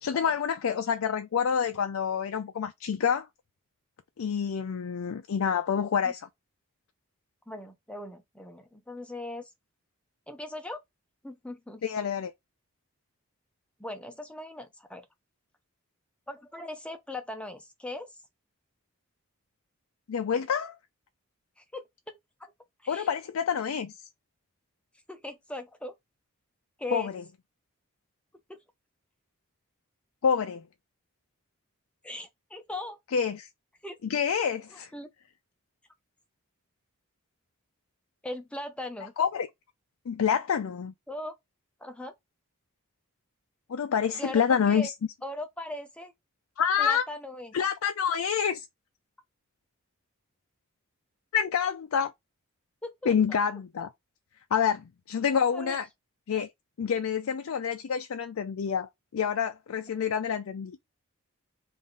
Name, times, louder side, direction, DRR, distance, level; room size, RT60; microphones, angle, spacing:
voice 1, 0.0-3.3 4.2-6.3 11.8-12.3 20.1-20.8 22.9-24.1 26.9-27.2 30.2-30.6 33.1-33.5 34.0-34.9 39.2-39.5 40.1-40.9 43.7-44.9 46.6-47.0 47.5-48.7 51.3-52.1 53.1-53.9 54.5-55.9 56.3-56.5 56.8-60.8, left 7 dB, 70° left, 0.4 m, -27 dB
voice 2, 7.5-9.5 10.3-10.8 11.2-11.8 13.8-15.1 16.3-18.2 21.6-22.5 22.8-23.1 25.1-25.9 26.8-27.1 28.5-28.6 32.0-33.0 33.8-34.0 34.9-35.1 38.2-39.1 41.1-41.3 41.8-42.1 44.2-44.9 45.2-46.1 46.8-47.6 52.8-53.1 55.5-55.8, left 1 dB, 5° left, 0.5 m, -39 dB
3.6 x 2.5 x 3.7 m
head